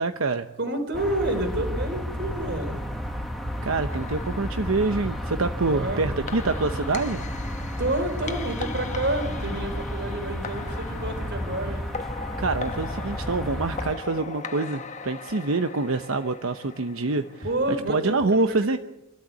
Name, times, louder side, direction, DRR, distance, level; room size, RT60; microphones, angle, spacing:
voice 1, 0.0-0.5 3.6-7.2 12.4-17.5 17.9-18.8, right 3 dB, 85° right, 8 dB, 0.9 m, -26 dB
voice 2, 0.6-2.9 5.7-6.3 7.8-11.8 17.4-18.8, right 1 dB, 60° right, 6 dB, 4.1 m, -29 dB
sound 1, 0.9-13.9, equal, ahead, 2.0 m, -32 dB
sound 2, 3.9-17.8, left 4 dB, 35° left, 1.2 m, -40 dB
26.5 x 13.0 x 8.5 m, 0.96 s
head